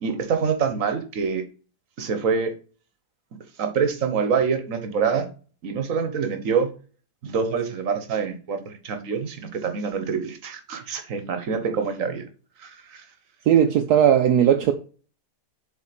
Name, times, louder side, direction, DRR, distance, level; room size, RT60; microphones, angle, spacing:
voice 1, 0.0-1.4 2.0-2.5 3.6-5.3 5.6-6.7 7.2-12.2 12.6-13.0, right 6 dB, 55° right, 1.6 m, -26 dB
voice 2, 13.5-14.7, right 9 dB, 75° right, 1.2 m, -17 dB
7.4 x 4.4 x 5.9 m
omnidirectional pair, 1.8 m